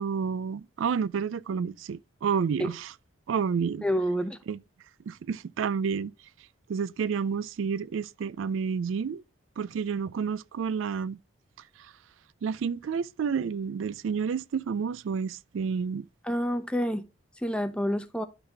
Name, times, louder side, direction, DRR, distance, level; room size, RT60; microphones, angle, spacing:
voice 1, 0.0-2.9 3.3-3.8 4.5-4.6 5.1-6.1 6.7-9.2 9.6-11.2 11.8-11.9 12.4-16.0, right 6 dB, 75° right, 0.3 m, -30 dB
voice 2, 3.8-4.4 16.2-17.0 17.4-18.2, equal, 5° left, 0.6 m, -28 dB
12.0 x 4.1 x 3.3 m
head